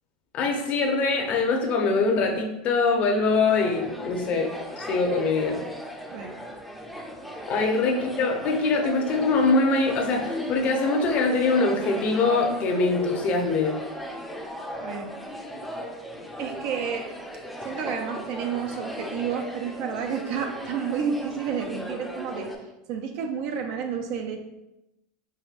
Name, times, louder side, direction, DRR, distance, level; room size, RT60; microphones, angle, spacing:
voice 1, 0.3-5.6 7.5-13.8, left 3 dB, 45° left, 2 dB, 0.7 m, -23 dB
sound 1, 3.5-22.5, equal, ahead, 0.5 m, -37 dB
voice 2, 14.8-15.1 16.4-17.1 17.6-22.5 22.9-24.4, right 6 dB, 55° right, 4 dB, 0.4 m, -30 dB
4.8 x 2.6 x 2.4 m, 0.92 s
supercardioid pair, 115°, 4 cm